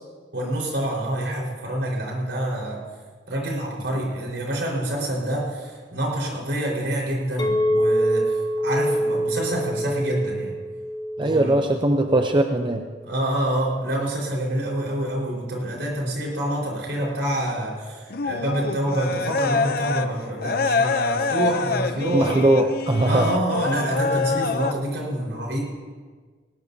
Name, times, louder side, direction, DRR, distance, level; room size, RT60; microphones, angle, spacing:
voice 1, 0.3-2.8 3.3-10.6 11.2-11.6 13.0-22.4 23.0-25.6, right 1 dB, 75° right, -2 dB, 4.6 m, -27 dB
Chink clink, 7.4-12.6, equal, 20° left, 0.9 m, -25 dB
voice 2, 11.2-12.8 22.1-23.2, right 1 dB, 25° right, 4 dB, 0.6 m, -20 dB
sound 1, 18.1-20.1 20.4-24.7, left 4 dB, 55° left, 0.6 m, -26 dB
19.0 x 19.0 x 2.8 m, 1.5 s
head